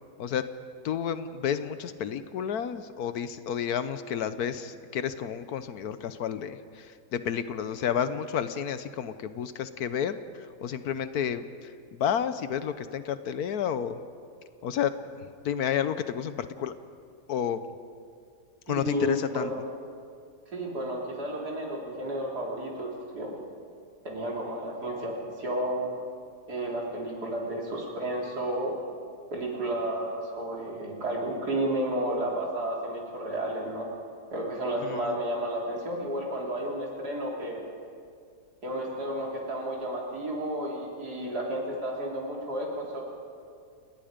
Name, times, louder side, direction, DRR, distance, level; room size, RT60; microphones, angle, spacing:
voice 1, 0.8-14.0 14.6-16.7 17.3-17.6 18.7-19.5 34.8-35.2, left 8 dB, 70° left, 12 dB, 1.2 m, -31 dB
voice 2, 18.7-19.6 20.5-23.4 24.0-26.0 26.5-28.9 29.3-33.9 34.3-37.6 38.6-43.0, right 1 dB, 70° right, -2 dB, 3.9 m, -32 dB
29.5 x 19.0 x 5.1 m, 2.3 s
omnidirectional pair, 1.8 m